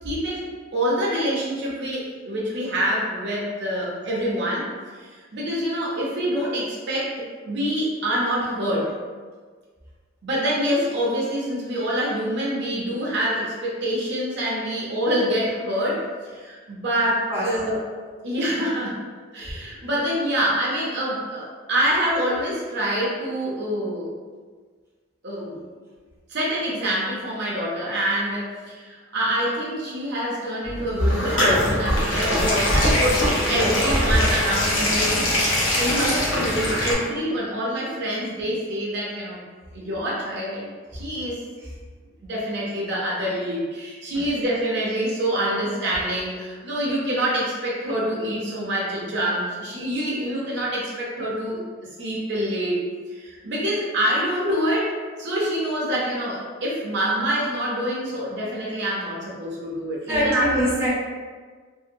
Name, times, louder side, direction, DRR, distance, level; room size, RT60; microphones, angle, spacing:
voice 1, 0.0-4.7 5.0-7.2 7.5-8.9 10.2-17.8 18.2-19.0 19.3-24.1 25.2-25.6 26.3-39.4 39.7-41.4 42.2-51.6 52.0-52.8 53.1-60.8, equal, 55° right, -5 dB, 0.6 m, -26 dB
sound 1, 30.6-36.9, equal, 65° left, 0.6 m, -21 dB
voice 2, 60.1-60.9, equal, 10° right, -9 dB, 0.5 m, -23 dB
2.7 x 2.0 x 2.5 m, 1.5 s
head